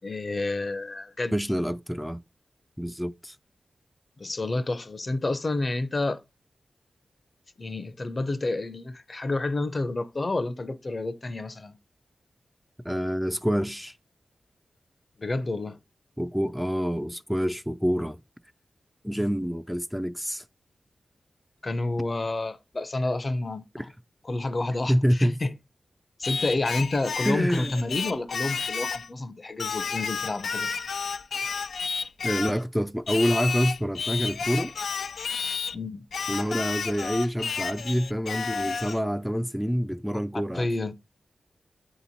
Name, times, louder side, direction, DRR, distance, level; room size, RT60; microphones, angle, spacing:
voice 1, 0.0-1.4 4.2-6.2 7.6-11.7 15.2-15.8 21.6-23.9 24.2-25.5 26.2-30.7 35.7-36.0 40.3-40.9, left 2 dB, 45° left, 0.7 m, -29 dB
voice 2, 1.3-2.2 2.8-3.4 12.8-13.9 16.2-18.2 19.0-20.4 24.9-25.4 27.2-27.8 32.2-34.7 36.3-40.7, equal, ahead, 0.4 m, -27 dB
Singing, 26.2-29.1 29.6-32.6 33.1-35.8 36.1-39.0, left 5 dB, 85° left, 0.3 m, -31 dB
7.7 x 3.0 x 4.1 m
cardioid pair, 45°, 0 cm